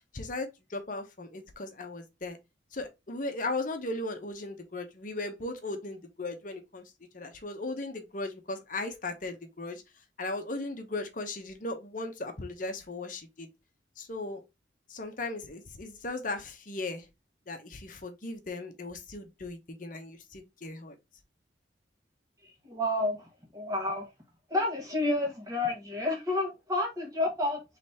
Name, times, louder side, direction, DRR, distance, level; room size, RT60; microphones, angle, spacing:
voice 1, 0.1-2.4 2.7-9.8 10.2-13.5 14.0-14.4 14.9-17.1 17.5-21.0, left 2 dB, 45° left, 0.9 m, -37 dB
voice 2, 22.4-24.1 24.5-27.6, left 2 dB, 20° right, 1.6 m, -30 dB
4.0 x 3.2 x 4.0 m
head